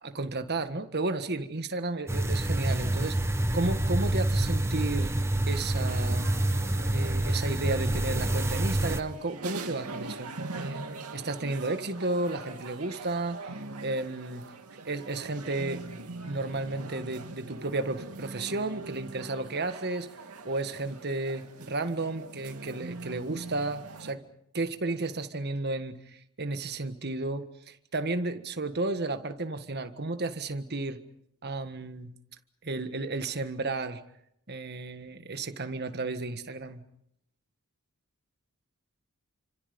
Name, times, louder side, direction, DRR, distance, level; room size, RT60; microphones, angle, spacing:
voice 1, 0.0-5.2 5.5-6.3 6.9-10.8 11.1-13.4 13.8-14.5 14.8-15.8 16.2-20.1 20.4-24.2 24.5-31.0 31.4-32.1 32.6-34.0 34.5-36.8, right 2 dB, 50° right, 9 dB, 1.6 m, -33 dB
sound 1, 2.1-9.0, right 1 dB, 10° right, 0.9 m, -27 dB
sound 2, 5.9-24.1, right 3 dB, 85° right, 2.6 m, -42 dB
29.5 x 26.0 x 5.3 m, 0.75 s
head